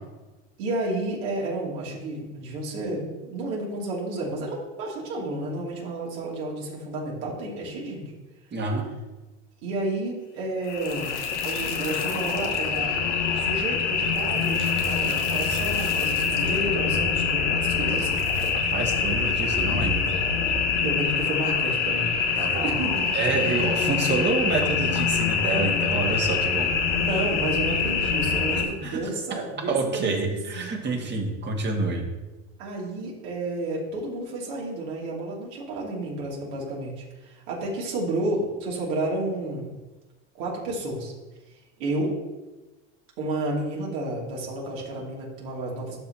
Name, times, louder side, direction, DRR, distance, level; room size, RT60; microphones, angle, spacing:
voice 1, 0.6-8.1 9.6-11.1 11.4-12.9 13.3-18.2 20.8-22.1 22.6-23.1 27.0-31.0 32.6-39.7 40.4-41.1 41.8-42.1 43.2-46.0, right 2 dB, 65° right, -3 dB, 2.9 m, -31 dB
voice 2, 8.5-8.8 18.5-20.0 22.4-22.7 23.1-26.7 28.5-29.0 29.7-32.0, right 3 dB, 30° right, 1 dB, 1.9 m, -27 dB
sound 1, 10.6-28.6, left 5 dB, 85° left, 1.3 m, -25 dB
12.0 x 5.7 x 2.9 m, 1.1 s
hypercardioid pair, 90°, 35 cm